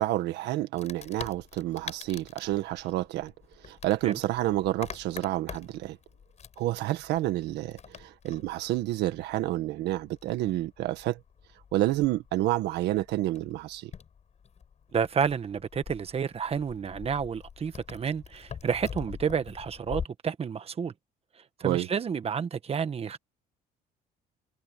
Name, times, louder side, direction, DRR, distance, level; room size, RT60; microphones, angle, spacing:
voice 1, 0.0-3.3 3.6-6.0 6.6-11.2 11.7-13.9 21.6-21.9, right 15 dB, 85° right, 1.7 m, -29 dB
Wood, 0.8-20.1, left 7 dB, 40° left, 7.4 m, -45 dB
voice 2, 14.9-20.9 21.6-23.2, right 6 dB, 35° right, 1.5 m, -30 dB
cardioid pair, 110°, 17 cm